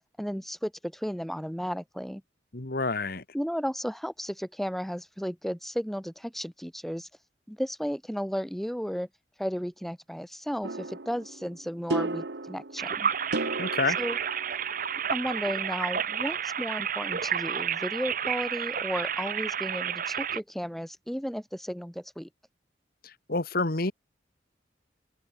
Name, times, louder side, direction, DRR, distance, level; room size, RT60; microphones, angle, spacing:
voice 1, 0.2-2.2 3.3-7.1 7.5-9.1 9.4-13.1 14.0-14.2 15.1-22.3, equal, ahead, 5.9 m, -34 dB
voice 2, 2.5-3.2 13.6-14.0 23.0-23.9, left 3 dB, 55° left, 1.8 m, -29 dB
sound 1, 10.6-15.1, right 2 dB, 70° right, 1.3 m, -35 dB
sound 2, 12.8-20.4, right 8 dB, 50° right, 1.2 m, -31 dB
open air
head